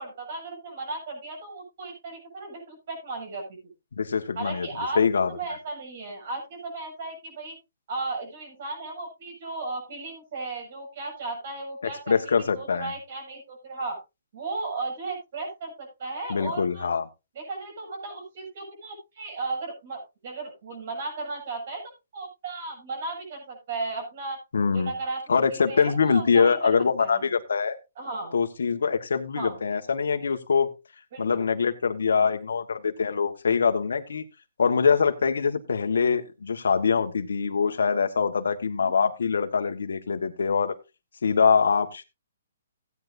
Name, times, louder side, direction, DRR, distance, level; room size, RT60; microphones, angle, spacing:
voice 1, 0.0-3.6 4.4-7.6 7.9-14.0 14.3-16.9 17.4-21.8 22.1-24.4 24.7-27.3 28.0-28.4 29.4-29.6 31.1-31.4 38.8-38.9, right 3 dB, 50° right, 7.2 m, -35 dB
voice 2, 4.0-4.7 4.9-5.3 12.1-12.9 16.3-17.1 24.5-24.9 25.3-27.8 28.3-30.7 31.2-34.2 34.6-40.7 41.2-42.0, left 5 dB, 85° left, 1.4 m, -24 dB
16.0 x 9.6 x 2.6 m
hypercardioid pair, 155°, 0 cm